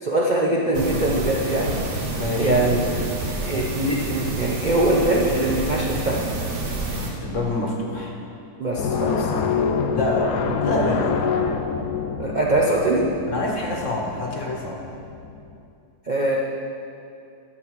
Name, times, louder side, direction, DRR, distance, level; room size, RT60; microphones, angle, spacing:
voice 1, 0.0-1.7 2.4-2.9 3.4-6.2 8.6-9.4 12.2-13.1 16.1-16.4, right 1 dB, 40° right, -3 dB, 0.6 m, -22 dB
sound 1, 0.7-7.1, right 2 dB, 80° right, 1.9 m, -28 dB
voice 2, 2.2-2.7 7.2-8.1 9.9-11.3 13.3-14.8, left 2 dB, 50° left, -1 dB, 1.5 m, -26 dB
sound 2, 8.8-15.6, left 6 dB, 75° left, 1.2 m, -26 dB
11.5 x 7.3 x 4.8 m, 2.6 s
omnidirectional pair, 1.8 m